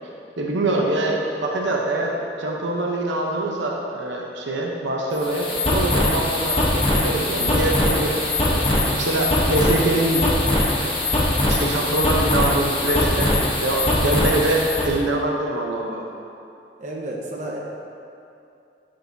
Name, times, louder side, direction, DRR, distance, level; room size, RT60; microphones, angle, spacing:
voice 1, 0.4-8.1 8.4-10.3 10.8-10.9 11.5-16.1, right 2 dB, 90° right, -1 dB, 0.8 m, -24 dB
sound 1, 5.1-14.9, left 1 dB, 30° left, 1.0 m, -21 dB
voice 2, 7.8-8.2 16.8-17.6, right 1 dB, 40° right, -3 dB, 1.1 m, -32 dB
10.5 x 6.3 x 2.7 m, 2.6 s
head